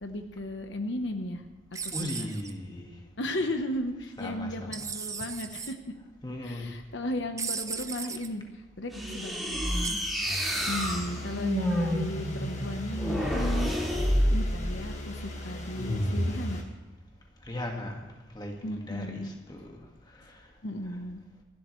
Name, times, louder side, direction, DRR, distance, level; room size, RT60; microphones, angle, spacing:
voice 1, 0.0-1.4 1.8-2.3 3.2-5.8 6.4-8.4 8.8-9.9 10.7-13.7 14.3-16.6 18.6-19.3 20.6-21.2, left 1 dB, 70° left, 6 dB, 1.1 m, -35 dB
sound 1, 1.7-2.5 4.7-5.7 7.4-8.3 9.8-10.1, right 6 dB, 15° right, 0.5 m, -36 dB
voice 2, 1.9-2.9 4.2-4.7 6.2-6.7 17.4-19.8 20.1-20.5, left 1 dB, 20° left, 1 dB, 1.8 m, -38 dB
sound 2, 8.9-14.8 15.7-16.4, equal, ahead, 2.8 m, -29 dB
sound 3, 10.5-16.6, left 1 dB, 35° left, 1.8 m, -39 dB
26.5 x 12.0 x 3.2 m, 1.2 s
head